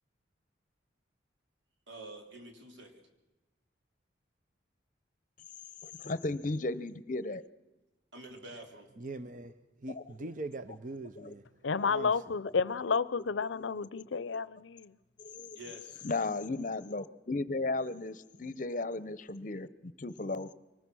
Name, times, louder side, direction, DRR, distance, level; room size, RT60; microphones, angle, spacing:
voice 1, 1.9-3.1 8.1-8.9 15.5-16.0, right 2 dB, 80° right, 3.4 m, -48 dB
voice 2, 5.8-7.4 9.9-10.3 10.7-10.8 11.1-11.3 11.8-11.9 12.7-12.8 13.5-13.7 14.2-14.4 15.2-15.6 16.0-20.5, left 2 dB, 40° left, 0.7 m, -36 dB
voice 3, 9.0-9.5 9.8-11.4 11.9-12.1, right 2 dB, 45° right, 0.6 m, -41 dB
voice 4, 11.6-14.9, left 5 dB, 85° left, 0.6 m, -31 dB
24.0 x 20.0 x 6.2 m
head